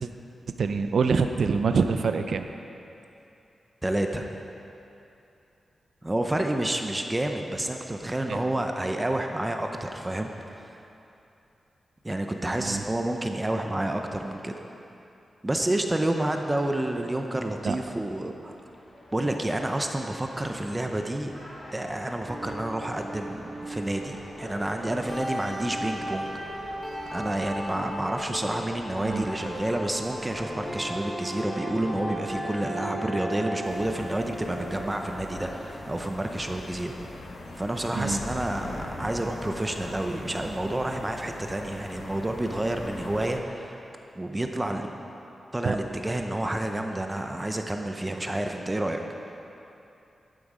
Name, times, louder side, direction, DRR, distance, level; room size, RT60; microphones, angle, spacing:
voice 1, 0.6-2.5 8.3-8.4 12.6-12.8 17.6-17.8 29.0-29.3 38.0-38.2 45.6-45.8, right 5 dB, 65° right, 7 dB, 0.5 m, -25 dB
voice 2, 3.8-4.3 6.0-10.8 12.0-14.5 15.4-18.6 19.1-21.3 21.7-26.3 26.6-26.7 27.1-36.9 37.5-43.8 44.1-44.9 45.5-49.0, right 1 dB, 15° right, 4 dB, 0.6 m, -29 dB
sound 1, 18.1-30.7, left 1 dB, 45° left, 2.9 m, -47 dB
sound 2, 22.2-36.2, equal, 10° left, 2.7 m, -36 dB
sound 3, 33.6-43.4, left 2 dB, 85° left, 1.3 m, -41 dB
11.5 x 8.9 x 4.9 m, 2.8 s
wide cardioid pair, 135°, 0 cm